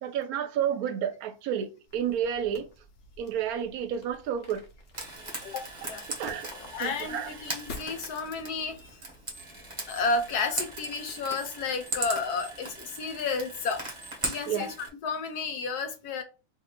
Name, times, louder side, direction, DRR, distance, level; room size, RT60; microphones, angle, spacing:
voice 1, 0.0-2.7 3.2-4.7 5.4-5.5 6.2-6.5 6.8-7.4 14.5-14.7, right 9 dB, 75° right, 1.0 m, -31 dB
sound 1, 1.9-11.2, left 2 dB, 55° left, 1.0 m, -50 dB
Frying (food), 4.9-14.9, right 2 dB, 25° right, 0.9 m, -39 dB
voice 2, 5.4-6.1 6.7-9.0 9.9-13.8 14.2-16.2, left 4 dB, 90° left, 1.3 m, -32 dB
sound 2, 9.3-9.6 9.8-10.8 11.1-14.3, right 3 dB, 30° left, 0.9 m, -50 dB
3.0 x 2.6 x 4.2 m
omnidirectional pair, 1.6 m